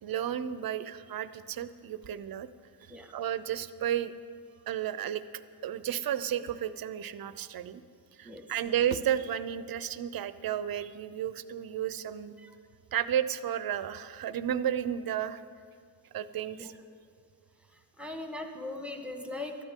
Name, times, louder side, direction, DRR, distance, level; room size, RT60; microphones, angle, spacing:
voice 1, 0.0-2.5 2.8-4.1 4.7-7.8 8.1-12.3 12.9-15.4 16.1-16.7, right 10 dB, 50° right, 14 dB, 0.7 m, -33 dB
voice 2, 17.7-19.6, left 2 dB, 5° right, 3 dB, 1.4 m, -40 dB
19.5 x 13.0 x 3.7 m, 2.3 s
cardioid pair, 110°, 45 cm